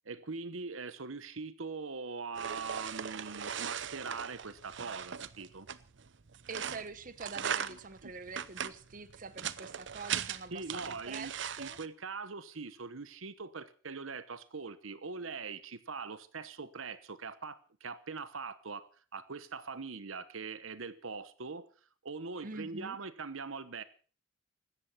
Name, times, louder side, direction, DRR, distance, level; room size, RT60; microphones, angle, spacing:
voice 1, 0.1-5.7 8.0-8.1 10.5-11.3 11.6-21.7 22.0-23.8, right 4 dB, 75° right, 1.1 m, -42 dB
sound 1, 2.3-11.9, right 8 dB, 60° right, 0.8 m, -39 dB
voice 2, 6.5-11.3 11.6-11.8 22.4-23.0, right 4 dB, 40° right, 1.1 m, -45 dB
16.5 x 13.0 x 5.8 m
head